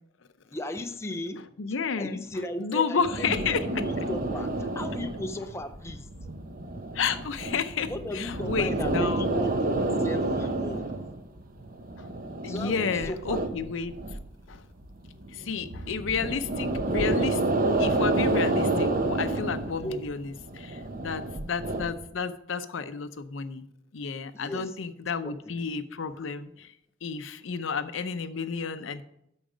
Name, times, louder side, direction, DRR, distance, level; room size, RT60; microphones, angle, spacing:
voice 1, 0.5-1.5 2.0-6.1 7.9-11.0 12.5-13.4 19.8-20.1 24.3-24.8 25.2-25.3, left 1 dB, 15° left, 0.4 m, -36 dB
voice 2, 1.6-2.3 2.6-3.8 6.9-9.3 12.0-12.1 12.4-14.0 14.5-14.6 15.3-17.4 17.8-23.7 23.9-26.7 27.0-29.0, left 5 dB, 75° left, 0.6 m, -31 dB
sound 1, 3.0-14.5 14.8-22.1, right 2 dB, 45° right, 0.8 m, -29 dB
8.8 x 6.3 x 5.0 m
head